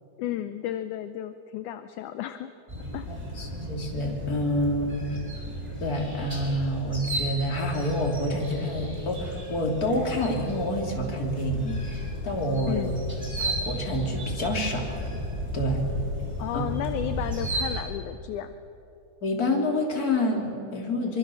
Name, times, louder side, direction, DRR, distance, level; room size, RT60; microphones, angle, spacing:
voice 1, 0.2-2.5 2.9-3.1 12.7-13.0 16.4-18.6, left 11 dB, 75° left, 10 dB, 1.9 m, -33 dB
sound 1, 2.7-17.8, right 1 dB, 10° right, 4.9 m, -34 dB
voice 2, 3.1-5.0 5.8-12.9 13.4-15.0 15.5-15.9 16.5-16.7 19.2-21.2, left 1 dB, 25° left, 0 dB, 3.4 m, -28 dB
25.0 x 23.5 x 7.1 m, 2.9 s
omnidirectional pair, 4.0 m